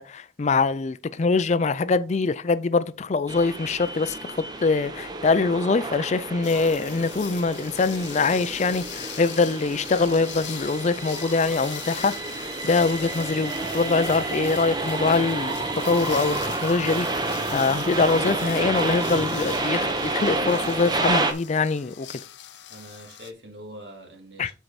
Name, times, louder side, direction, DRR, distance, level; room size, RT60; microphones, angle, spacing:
voice 1, 0.0-15.5 15.8-22.1 24.4-24.5, left 4 dB, 40° left, 0.4 m, -24 dB
sound 1, 3.3-21.3, right 2 dB, 25° right, 0.8 m, -30 dB
sound 2, 6.4-23.3, left 12 dB, 80° left, 0.7 m, -41 dB
voice 2, 22.7-24.5, equal, 70° right, 2.2 m, -43 dB
7.8 x 4.7 x 4.1 m
head